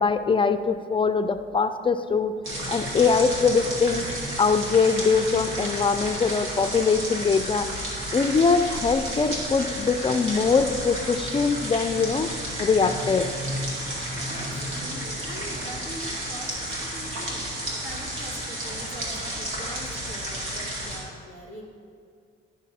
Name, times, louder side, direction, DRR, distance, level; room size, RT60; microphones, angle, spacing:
voice 1, 0.0-2.3 2.7-4.0 4.4-7.7 8.1-12.3 12.6-13.3, left 5 dB, 25° left, 9 dB, 0.4 m, -22 dB
sound 1, 2.4-21.0, right 1 dB, 90° right, 2.0 m, -32 dB
voice 2, 14.2-17.5 17.8-21.7, right 1 dB, 70° right, -2 dB, 2.1 m, -42 dB
11.0 x 6.0 x 4.2 m, 2.3 s
cardioid pair, 90°, 20 cm